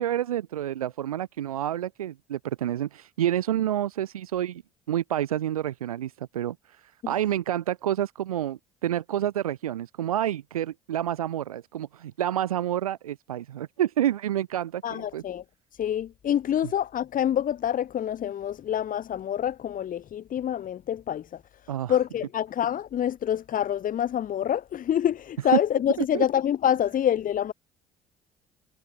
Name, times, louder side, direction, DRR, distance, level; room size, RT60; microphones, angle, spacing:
voice 1, 0.0-4.6 4.9-6.6 7.1-15.2 16.6-16.7 21.7-22.0 25.5-25.6 26.1-26.3, right 11 dB, 85° right, 7.2 m, -28 dB
voice 2, 14.8-15.4 15.8-21.2 21.9-27.5, left 10 dB, 50° left, 3.3 m, -26 dB
hypercardioid pair, 55°, 18 cm